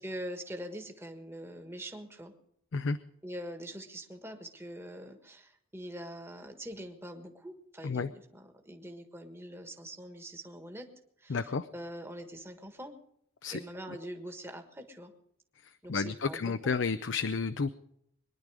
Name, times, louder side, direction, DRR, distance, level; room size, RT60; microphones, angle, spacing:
voice 1, 0.0-2.3 3.2-10.9 11.2-12.9 13.5-15.1 15.8-16.8, equal, 10° right, 5 dB, 1.4 m, -43 dB
voice 2, 11.3-11.7 13.4-13.6 15.9-17.7, left 4 dB, 60° left, 11 dB, 0.5 m, -31 dB
23.0 x 10.5 x 4.9 m, 0.74 s
head